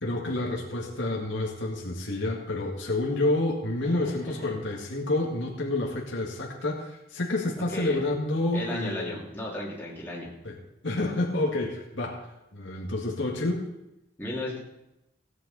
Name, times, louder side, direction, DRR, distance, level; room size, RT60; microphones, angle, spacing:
voice 1, 0.0-9.2 10.4-10.6 10.8-12.3 12.5-13.7, left 2 dB, 65° left, -1 dB, 2.1 m, -29 dB
voice 2, 4.0-4.5 7.7-8.0 8.5-10.3 14.2-14.6, left 1 dB, 10° left, -5 dB, 2.8 m, -35 dB
17.0 x 9.3 x 4.2 m, 0.89 s
head